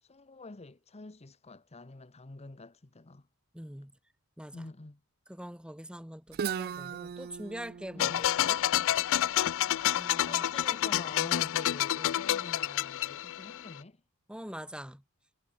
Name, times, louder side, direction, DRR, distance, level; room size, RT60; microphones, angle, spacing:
voice 1, 0.0-3.3 4.5-5.0 7.9-8.4 10.3-14.0, left 2 dB, 30° left, 0.9 m, -46 dB
voice 2, 3.5-3.9 4.4-4.7 5.3-8.6 10.0-10.4 14.3-15.0, equal, 5° right, 1.9 m, -43 dB
Guitar, 6.3-10.1, right 7 dB, 45° right, 0.4 m, -39 dB
sound 1, 8.0-13.7, left 12 dB, 60° left, 0.4 m, -29 dB
head